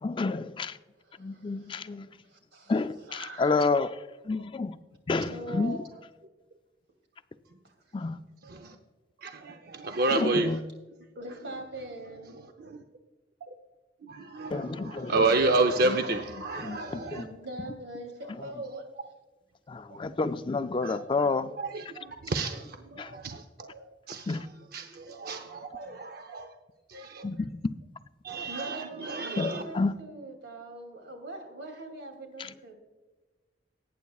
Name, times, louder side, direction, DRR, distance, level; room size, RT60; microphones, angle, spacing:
voice 1, 0.0-0.7 1.2-2.1 2.7-2.9 3.4-3.9 4.3-4.7 5.1-5.8 7.9-8.2 10.1-10.6 14.5-15.1 16.6-17.2 19.7-21.5 23.0-23.1 24.3-24.5 27.2-27.5 29.4-29.9, left 3 dB, 25° left, 0.4 m, -29 dB
voice 2, 1.0-1.9 2.2-2.8 3.1-3.6 5.3-6.0 11.1-12.4 17.2-18.9 28.5-32.7, right 2 dB, 85° right, 2.7 m, -42 dB
voice 3, 8.4-8.8 9.2-10.6 12.6-12.8 13.4-13.5 14.0-17.2 20.8-26.5 26.9-27.3 28.2-29.6, right 3 dB, 55° right, 0.7 m, -31 dB
18.5 x 9.3 x 2.4 m
head